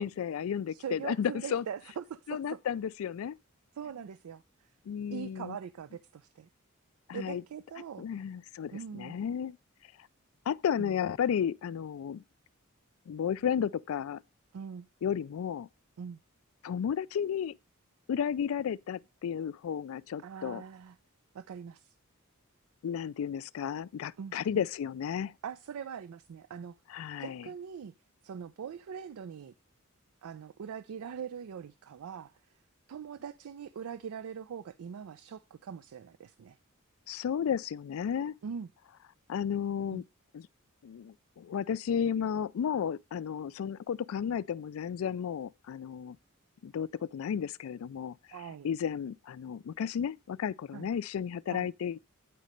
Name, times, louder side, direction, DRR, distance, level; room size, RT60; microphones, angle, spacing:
voice 1, 0.0-1.6 2.3-3.4 4.9-5.6 7.1-7.4 8.0-9.6 10.5-12.2 13.1-14.2 15.0-15.7 16.6-17.6 18.1-20.6 22.8-25.3 26.9-27.5 37.1-38.3 39.3-40.0 40.3-40.4 40.8-46.2 46.6-48.2 48.6-52.1, left 8 dB, 70° left, 0.3 m, -33 dB
voice 2, 0.7-2.6 3.7-4.4 5.1-6.5 7.1-8.1 8.7-9.2 10.8-10.9 14.5-14.9 16.0-16.2 20.2-21.0 21.3-21.9 24.2-24.3 25.4-26.8 27.2-27.9 28.2-29.5 30.2-32.3 32.9-36.6 38.4-38.7 39.9-40.0 48.3-48.7 50.7-50.9 51.5-51.7, right 7 dB, 85° right, 0.4 m, -42 dB
9.2 x 4.2 x 5.1 m
head